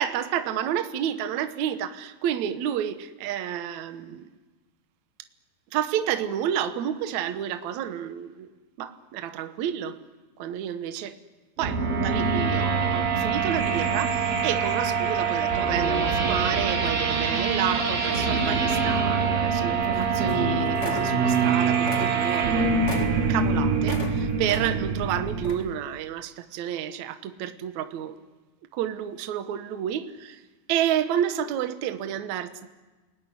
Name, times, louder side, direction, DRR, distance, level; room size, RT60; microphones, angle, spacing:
voice 1, 0.0-4.3 5.7-8.5 8.8-10.0 10.4-11.2 11.6-22.8 23.3-28.2 28.7-30.4 30.7-32.7, right 10 dB, 70° right, 1.7 m, -30 dB
sound 1, 11.6-25.6, right 5 dB, 50° right, 4.7 m, -24 dB
sound 2, 19.9-20.5 20.7-21.5 21.8-24.1 24.4-25.0 25.4-25.7, left 2 dB, 80° left, 0.6 m, -37 dB
29.5 x 20.0 x 10.0 m
omnidirectional pair, 5.1 m